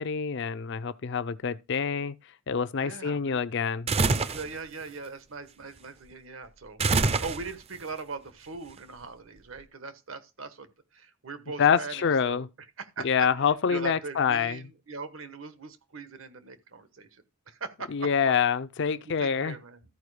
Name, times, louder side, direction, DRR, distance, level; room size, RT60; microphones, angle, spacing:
voice 1, 0.0-2.1 2.5-3.9 11.6-12.5 13.0-14.6 17.9-19.5, left 6 dB, 60° left, 0.5 m, -26 dB
voice 2, 2.8-3.4 4.3-12.4 12.8-18.3 19.0-19.8, right 4 dB, 75° right, 1.2 m, -41 dB
sound 1, 3.9-4.5 6.8-7.7, right 4 dB, 30° right, 0.5 m, -25 dB
13.5 x 4.8 x 4.8 m
head